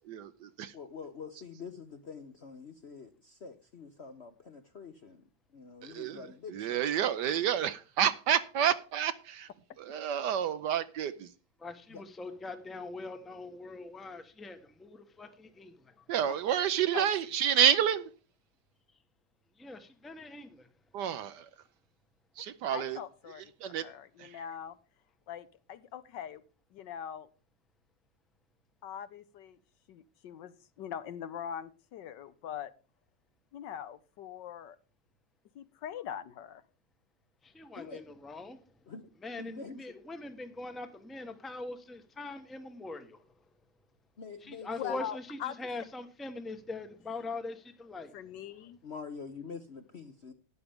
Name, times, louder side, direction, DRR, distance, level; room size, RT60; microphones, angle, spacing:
voice 1, 0.1-0.7 5.8-6.2 6.6-9.5 9.8-11.3 16.1-18.1 20.9-21.5 22.4-23.0 23.6-23.8 24.2-24.3, right 9 dB, 70° right, 1.1 m, -29 dB
voice 2, 0.7-5.2 5.5-6.8 11.9-12.0 37.7-38.1 38.9-39.1 39.4-39.8 44.2-45.1 48.8-50.3, left 5 dB, 50° left, 0.8 m, -45 dB
voice 3, 11.6-16.0 19.6-20.7 37.4-38.6 39.2-43.2 44.4-48.1, left 2 dB, ahead, 0.6 m, -42 dB
voice 4, 22.7-24.8 25.3-26.4 26.7-27.3 28.8-29.6 29.9-32.7 33.5-34.8 35.5-36.6 44.8-45.6 48.1-48.8, left 9 dB, 70° left, 1.3 m, -42 dB
13.0 x 10.0 x 3.5 m
omnidirectional pair, 2.1 m